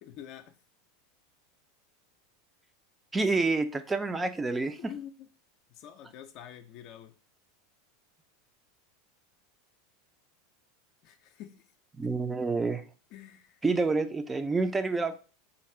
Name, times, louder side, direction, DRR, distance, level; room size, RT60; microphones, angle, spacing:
voice 1, 0.0-0.6 4.8-5.1 5.7-7.1 11.0-11.5 12.0-12.1 13.1-13.6, left 10 dB, 50° left, 0.4 m, -46 dB
voice 2, 3.1-4.9 12.0-12.8 13.6-15.2, right 3 dB, 15° right, 0.4 m, -28 dB
3.8 x 2.3 x 4.5 m
figure-of-eight pair, 85°, 0 cm